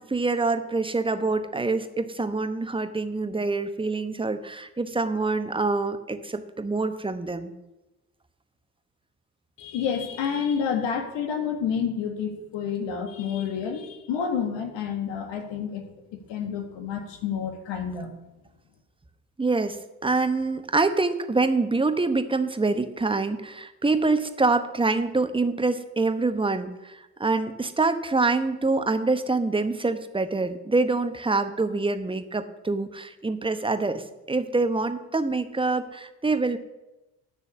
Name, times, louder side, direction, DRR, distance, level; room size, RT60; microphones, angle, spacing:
voice 1, 0.1-7.5 19.4-36.6, right 3 dB, 10° right, 9 dB, 1.0 m, -25 dB
voice 2, 9.6-15.8 16.1-18.1, left 7 dB, 60° left, 5 dB, 1.8 m, -29 dB
9.8 x 6.7 x 7.0 m, 0.99 s
figure-of-eight pair, 55°, 48 cm